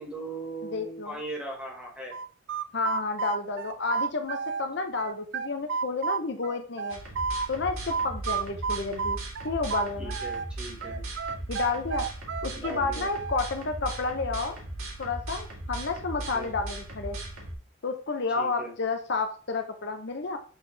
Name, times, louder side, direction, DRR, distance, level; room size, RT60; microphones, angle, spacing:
voice 1, 0.0-2.1 10.0-11.0 12.5-13.1 16.3-16.5 18.4-18.7, right 2 dB, 5° right, -1 dB, 1.6 m, -39 dB
voice 2, 0.7-1.2 2.7-7.0 7.5-9.2 9.4-10.1 11.5-12.0 12.4-14.6 15.0-17.2 17.8-20.4, left 3 dB, 55° left, 5 dB, 0.7 m, -31 dB
sound 1, 2.1-4.6 5.0-7.5 7.9-10.5 10.8-13.4, right 5 dB, 55° right, 0.3 m, -31 dB
sound 2, 6.9-17.5, right 2 dB, 80° right, 1.8 m, -38 dB
7.2 x 4.1 x 3.4 m, 0.41 s
head